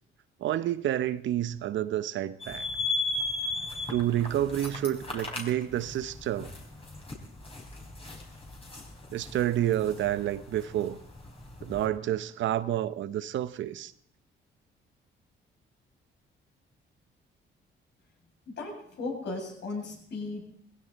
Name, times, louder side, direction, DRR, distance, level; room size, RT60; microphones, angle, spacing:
voice 1, 0.4-2.7 3.9-6.5 9.1-11.0 11.6-13.9, right 12 dB, 70° right, 0.7 m, -29 dB
sound 1, 2.4-11.9, left 3 dB, 30° left, 4.5 m, -37 dB
voice 2, 18.5-20.4, left 3 dB, 60° left, 7.3 m, -36 dB
19.5 x 16.0 x 4.1 m
cardioid pair, 90°, 20 cm